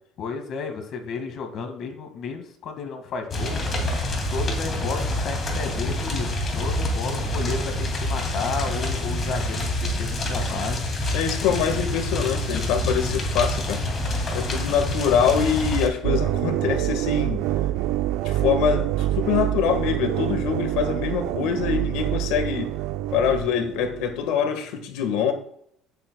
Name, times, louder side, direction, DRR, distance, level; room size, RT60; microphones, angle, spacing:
voice 1, 0.2-3.6 4.3-10.8 11.4-11.8, left 5 dB, 50° left, 5 dB, 1.8 m, -32 dB
sound 1, 3.3-15.9, left 1 dB, 30° left, 2.4 m, -27 dB
voice 2, 11.1-13.8 14.3-17.4 18.2-22.7 23.1-25.3, left 7 dB, 75° left, 7 dB, 1.5 m, -24 dB
sound 2, 16.0-24.1, right 13 dB, 75° right, 0.4 m, -26 dB
16.0 x 7.4 x 2.3 m, 0.67 s
cardioid pair, 145°, 0 cm